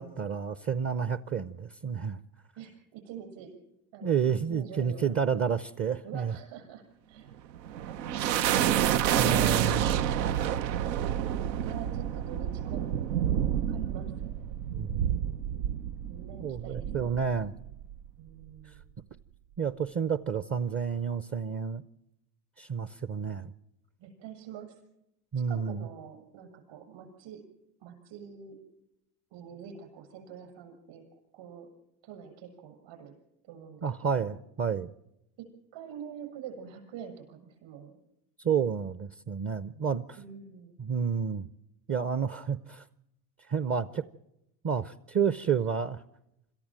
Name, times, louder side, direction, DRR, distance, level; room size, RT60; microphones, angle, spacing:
voice 1, 0.0-2.2 4.0-6.4 9.2-10.0 14.7-15.1 16.4-17.5 18.6-18.7 19.6-21.8 22.6-23.5 25.3-25.9 33.8-34.9 38.4-40.0 40.8-41.5 41.9-42.9 43.5-44.0 44.6-46.0, right 7 dB, 25° right, 14 dB, 0.6 m, -30 dB
voice 2, 2.6-3.6 3.9-4.2 4.5-5.2 6.0-7.3 11.5-14.6 16.1-17.5 18.2-18.8 24.0-24.7 25.5-27.4 27.8-28.6 29.3-31.7 32.0-33.1 33.4-34.4 35.4-38.0 40.2-40.8, right 8 dB, 60° right, 5 dB, 7.1 m, -46 dB
sound 1, 7.3-18.1, right 10 dB, 85° right, 0.8 m, -29 dB
26.5 x 14.0 x 7.5 m, 0.85 s
hypercardioid pair, 85°, 50 cm